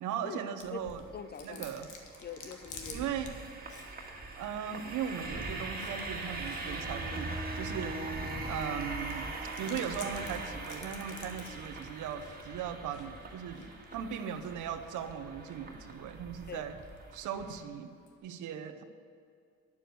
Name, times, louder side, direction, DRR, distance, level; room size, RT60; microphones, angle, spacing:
voice 1, 0.0-1.0 1.4-1.9 2.9-3.3 4.4-8.1 8.4-13.7 13.9-16.8 17.1-17.9 18.2-18.8, right 8 dB, 80° right, 8 dB, 0.8 m, -38 dB
Chewing mastication, 0.6-18.2, left 5 dB, 80° left, 1.4 m, -54 dB
sound 1, 0.6-17.6, right 2 dB, 30° right, 1.8 m, -41 dB
voice 2, 1.1-1.7 2.2-3.1 16.5-16.7, left 6 dB, 35° left, 13 dB, 0.5 m, -43 dB
9.8 x 7.0 x 7.6 m, 2.4 s
cardioid pair, 90°, 30 cm